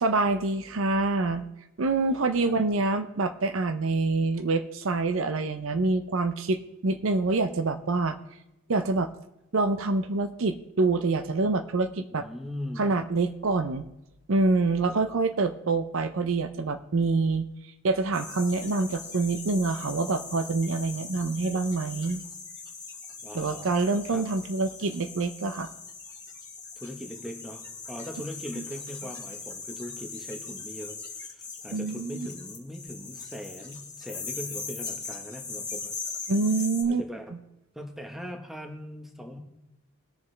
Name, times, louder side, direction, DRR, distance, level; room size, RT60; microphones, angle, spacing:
voice 1, 0.0-1.4 1.8-8.2 8.7-9.1 9.5-12.3 12.8-13.8 14.3-17.5 17.8-22.2 23.3-25.7 31.7-32.3 36.3-37.0, right 3 dB, 65° right, 10 dB, 0.6 m, -26 dB
voice 2, 2.1-2.6 12.1-12.9 14.9-15.0 23.2-23.7 24.1-24.3 26.8-31.0 31.3-35.9 36.8-37.3 37.7-39.4, equal, ahead, 4 dB, 1.1 m, -40 dB
sound 1, 18.1-36.8, left 4 dB, 15° left, 2.1 m, -40 dB
19.0 x 6.9 x 3.3 m, 0.90 s
head